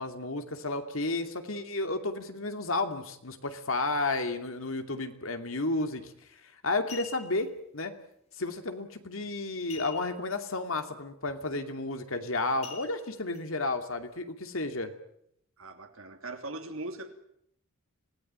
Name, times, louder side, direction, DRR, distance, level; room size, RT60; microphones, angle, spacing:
voice 1, 0.0-6.1 6.4-7.9 8.4-14.9, left 2 dB, 70° left, 7 dB, 2.6 m, -32 dB
sound 1, 6.0-6.2 6.7-7.5 9.7-10.4 10.7-10.8 11.3-11.5 12.6-13.4 14.0-14.1, left 7 dB, 30° left, 3.5 m, -45 dB
voice 2, 15.6-17.1, right 2 dB, 70° right, 5 dB, 3.1 m, -40 dB
26.0 x 18.0 x 8.9 m, 0.74 s
head